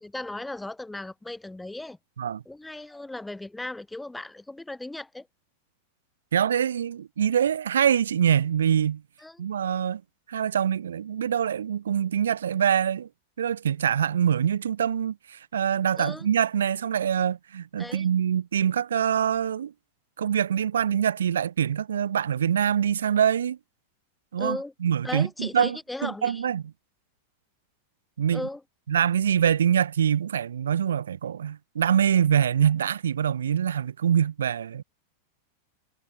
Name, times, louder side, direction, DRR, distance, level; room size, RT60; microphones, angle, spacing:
voice 1, 0.0-2.0 2.4-5.3 9.2-9.5 16.0-16.3 17.8-18.1 24.4-24.7 25.0-26.4 28.3-28.6, left 2 dB, 5° left, 1.2 m, -36 dB
voice 2, 6.3-9.0 9.4-10.0 10.3-13.1 13.4-19.7 20.2-23.6 24.3-26.6 28.2-28.4 28.9-34.8, right 9 dB, 65° right, 0.4 m, -24 dB
figure-of-eight pair, 90°, 0 cm